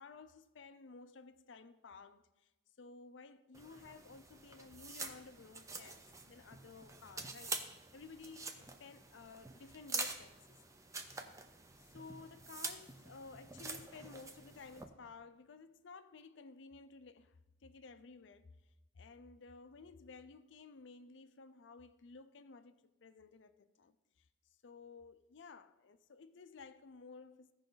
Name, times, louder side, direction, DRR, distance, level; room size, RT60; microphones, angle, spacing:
voice 1, 0.0-2.5 2.8-10.6 10.9-11.3 11.8-18.6 18.9-24.3 24.6-27.5, left 4 dB, 70° left, 0.5 m, -55 dB
sound 1, 3.5-14.8, right 3 dB, 15° right, 0.6 m, -46 dB
15.0 x 5.2 x 3.9 m
head